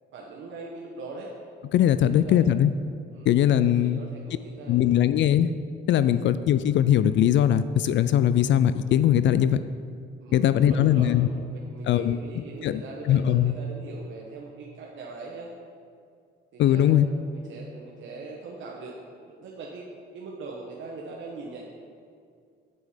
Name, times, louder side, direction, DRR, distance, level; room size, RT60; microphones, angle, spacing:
voice 1, 0.1-1.3 1.9-2.4 3.1-5.0 6.1-6.3 10.2-15.5 16.5-19.0 19.2-19.8 20.1-21.7, right 3 dB, 75° right, -2 dB, 1.2 m, -41 dB
voice 2, 1.7-2.7 3.3-4.0 4.7-5.5 5.9-9.6 10.3-11.3 11.9-12.2 12.6-12.8 13.1-13.5 16.6-17.1, left 11 dB, 70° left, 13 dB, 0.4 m, -20 dB
8.5 x 8.2 x 5.2 m, 2.3 s
cardioid pair, 90°, 20 cm